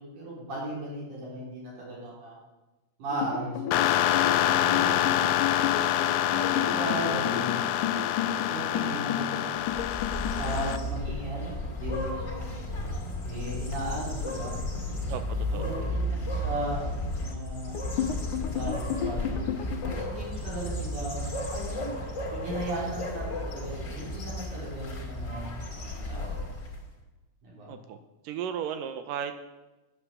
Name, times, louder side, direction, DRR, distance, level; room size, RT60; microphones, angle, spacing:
voice 1, 0.0-2.4 3.0-3.8 4.6-5.2 6.3-7.6 8.5-9.6 10.3-12.5 13.2-14.5 14.9-15.1 15.5-17.8 18.5-21.3 22.3-26.3 27.4-27.7, right 1 dB, 55° right, -5 dB, 5.2 m, -36 dB
sound 1, 3.1-11.1 17.7-20.0, left 9 dB, 65° left, 2.4 m, -33 dB
sound 2, 3.7-10.8, left 12 dB, 80° left, 2.3 m, -26 dB
sound 3, 9.6-26.9, left 1 dB, 25° left, 2.0 m, -33 dB
voice 2, 15.1-16.0 27.7-28.0 28.2-29.5, right 8 dB, 80° right, 9 dB, 2.1 m, -35 dB
10.5 x 8.9 x 6.8 m, 1.1 s
omnidirectional pair, 4.2 m